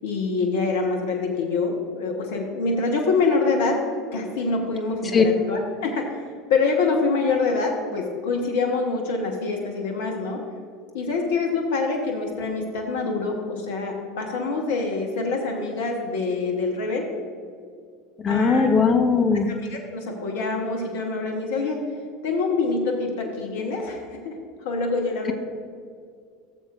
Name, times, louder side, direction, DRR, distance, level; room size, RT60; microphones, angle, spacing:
voice 1, 0.0-3.8 4.1-6.1 6.5-10.4 10.9-17.1 18.3-18.7 19.5-21.8 22.2-24.3 24.6-25.3, left 4 dB, 70° left, 1 dB, 1.1 m, -25 dB
voice 2, 18.2-19.5, left 5 dB, 30° left, 5 dB, 0.8 m, -19 dB
14.5 x 7.3 x 2.5 m, 2.2 s
figure-of-eight pair, 75°, 0 cm